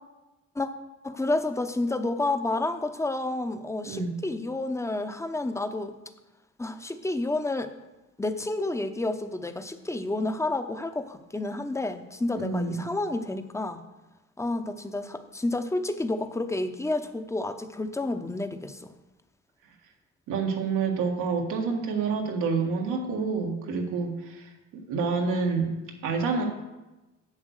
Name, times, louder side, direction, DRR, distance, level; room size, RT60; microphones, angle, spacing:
voice 1, 1.0-5.9 6.6-7.7 8.2-13.8 14.4-18.9, left 2 dB, 10° left, 9 dB, 0.8 m, -30 dB
voice 2, 3.8-4.2 12.3-12.8 20.3-25.8 26.0-26.4, right 4 dB, 90° right, 1 dB, 1.8 m, -28 dB
8.0 x 7.4 x 6.5 m, 1.1 s
cardioid pair, 90°, 30 cm